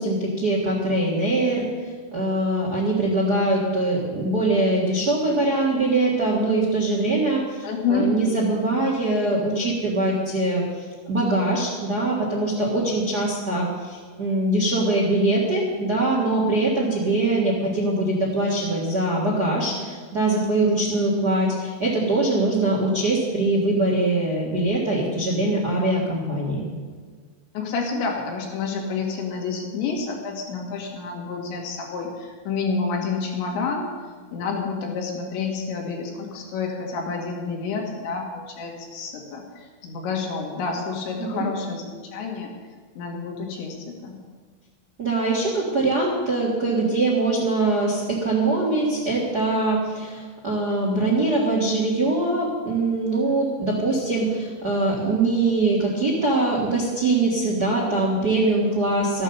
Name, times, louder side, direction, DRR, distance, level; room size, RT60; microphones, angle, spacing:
voice 1, 0.0-26.7 41.2-41.4 45.0-59.2, right 2 dB, 75° right, -3 dB, 0.9 m, -23 dB
voice 2, 7.6-8.1 27.5-33.9 34.3-42.6 43.0-44.2, left 4 dB, 90° left, 0 dB, 4.2 m, -29 dB
13.5 x 8.8 x 6.8 m, 1.5 s
omnidirectional pair, 5.1 m